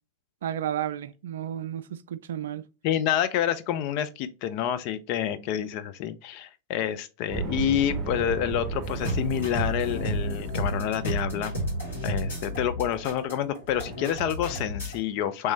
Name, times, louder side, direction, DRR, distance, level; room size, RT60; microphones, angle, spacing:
voice 1, 0.4-2.6, right 10 dB, 60° right, 0.3 m, -32 dB
voice 2, 2.8-11.5 12.0-15.5, left 10 dB, 45° left, 0.4 m, -28 dB
sound 1, 7.3-12.1, right 4 dB, 30° right, 0.7 m, -35 dB
sound 2, 8.8-15.0, equal, 70° left, 2.1 m, -32 dB
3.3 x 3.1 x 3.1 m
figure-of-eight pair, 90°, 0 cm